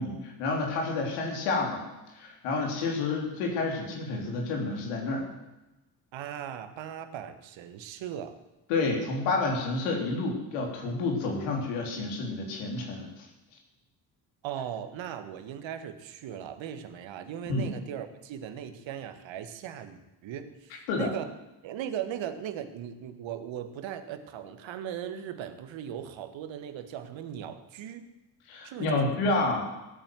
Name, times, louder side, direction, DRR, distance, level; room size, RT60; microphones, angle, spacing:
voice 1, 0.0-1.8 2.1-5.3 8.7-13.2 17.5-17.7 20.9-21.1 28.5-29.6, left 3 dB, 75° left, 1 dB, 3.5 m, -29 dB
voice 2, 6.1-8.4 14.4-21.3 21.6-28.1 28.6-29.2, right 9 dB, 65° right, 10 dB, 1.7 m, -38 dB
17.0 x 9.0 x 7.6 m, 1.0 s
hypercardioid pair, 55°, 50 cm